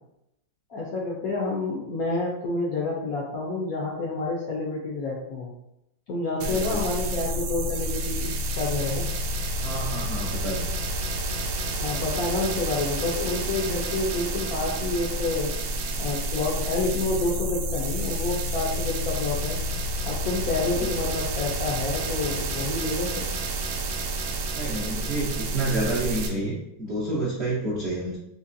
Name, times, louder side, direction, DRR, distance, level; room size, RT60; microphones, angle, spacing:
voice 1, 0.7-5.5 6.1-9.1 11.7-15.5 16.0-19.6 20.0-23.3, left 3 dB, 65° left, -3 dB, 0.9 m, -29 dB
voice 2, 6.4-6.8 9.6-10.7 20.8-20.9 24.5-28.2, right 2 dB, 55° right, -7 dB, 0.7 m, -29 dB
sound 1, 6.4-26.3, right 1 dB, 85° right, 1.3 m, -29 dB
4.0 x 2.9 x 2.6 m, 0.82 s
omnidirectional pair, 2.1 m